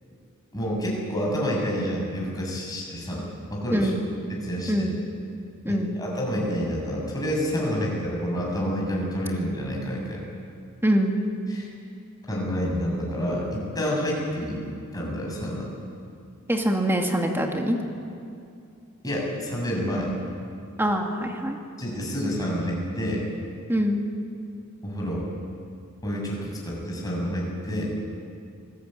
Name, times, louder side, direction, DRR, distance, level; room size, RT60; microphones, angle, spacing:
voice 1, 0.5-3.9 4.3-4.9 5.7-10.3 11.5-11.7 12.3-14.6 14.9-15.7 19.0-20.1 21.8-23.2 24.8-25.3 26.0-27.8, equal, 20° left, -3 dB, 7.2 m, -28 dB
voice 2, 3.7-4.1 4.7-5.0 5.6-5.9 10.8-11.1 16.5-17.8 20.8-21.6 23.7-24.0, equal, 10° right, 2 dB, 2.4 m, -24 dB
25.5 x 19.5 x 9.0 m, 2.4 s
head